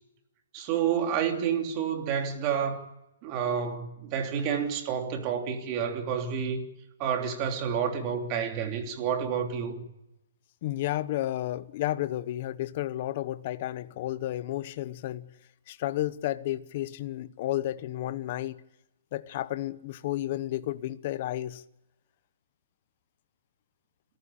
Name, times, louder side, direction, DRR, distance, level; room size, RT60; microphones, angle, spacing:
voice 1, 0.5-2.8 3.2-6.6 7.0-9.8, right 7 dB, 25° right, 3.1 m, -29 dB
voice 2, 10.6-15.3 15.7-18.6 19.1-21.6, left 14 dB, 35° left, 0.9 m, -32 dB
27.5 x 14.5 x 10.0 m
hypercardioid pair, 165°, 0 cm